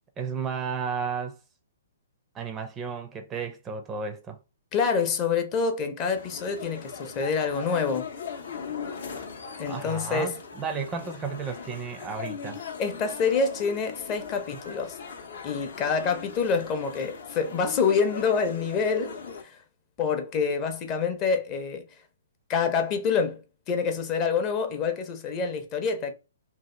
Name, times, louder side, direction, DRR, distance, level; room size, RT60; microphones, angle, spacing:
voice 1, 0.2-1.4 2.3-4.4 9.6-12.6, right 5 dB, 20° right, 0.4 m, -33 dB
voice 2, 4.7-8.1 9.6-10.4 12.8-15.0 15.4-19.6 20.0-21.8 22.5-23.4 23.7-26.1, left 5 dB, 30° left, 0.6 m, -27 dB
sound 1, 6.1-19.4, left 6 dB, 70° left, 0.6 m, -39 dB
2.7 x 2.4 x 3.2 m
hypercardioid pair, 135°, 0 cm